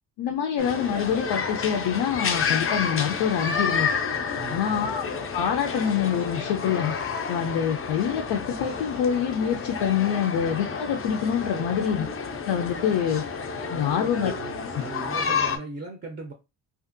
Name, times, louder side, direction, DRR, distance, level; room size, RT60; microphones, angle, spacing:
voice 1, 0.2-3.9 4.5-5.1 5.3-6.9 7.3-12.1 12.5-13.2 13.7-14.3, left 8 dB, 85° left, 0.5 m, -25 dB
sound 1, 0.6-15.6, left 5 dB, 30° left, 0.4 m, -30 dB
voice 2, 4.3-4.8 11.4-11.8 13.7-16.3, right 3 dB, 25° right, 0.4 m, -38 dB
2.6 x 2.5 x 2.5 m
cardioid pair, 100°, 44 cm